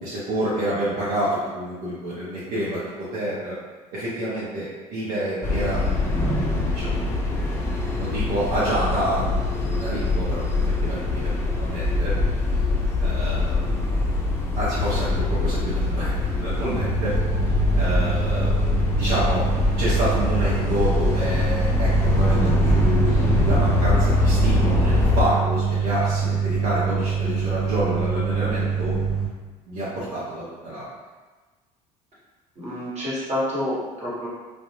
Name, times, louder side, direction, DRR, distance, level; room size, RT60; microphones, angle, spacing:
voice 1, 0.0-3.5 3.9-5.8 6.7-7.1 7.9-12.1 13.0-13.6 14.5-17.1 17.8-18.6 18.9-19.5 19.8-23.1 23.4-29.0 29.7-30.9, right 1 dB, 60° right, -9 dB, 0.8 m, -28 dB
sound 1, 5.4-25.2, left 2 dB, 10° left, 0.5 m, -23 dB
sound 2, 16.7-29.3, right 6 dB, 80° right, 1.1 m, -25 dB
voice 2, 32.6-34.3, left 1 dB, 35° right, -7 dB, 1.1 m, -28 dB
2.3 x 2.1 x 2.9 m, 1.3 s
hypercardioid pair, 65°, 20 cm